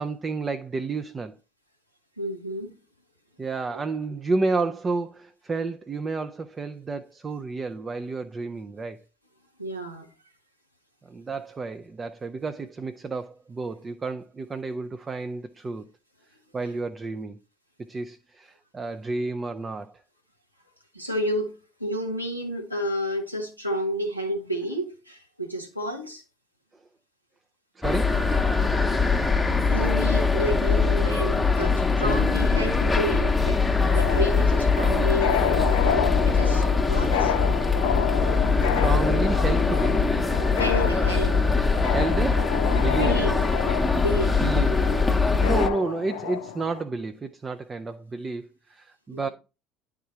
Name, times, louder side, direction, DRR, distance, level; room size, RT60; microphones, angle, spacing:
voice 1, 0.0-1.4 3.4-9.0 11.0-15.9 16.5-17.4 17.8-19.9 27.8-28.2 32.0-32.2 38.6-40.1 41.9-43.2 44.4-45.0 45.4-49.3, right 3 dB, 25° right, 0.5 m, -31 dB
voice 2, 2.2-2.8 9.6-10.1 20.9-26.2 29.7-37.3 40.5-41.4 42.8-43.4 43.9-44.4 49.1-49.3, equal, 90° right, 1.1 m, -31 dB
sound 1, 27.8-45.7, left 4 dB, 15° left, 0.9 m, -22 dB
sound 2, 33.8-46.8, left 9 dB, 65° left, 0.5 m, -30 dB
10.5 x 3.7 x 4.4 m
figure-of-eight pair, 60°, 0 cm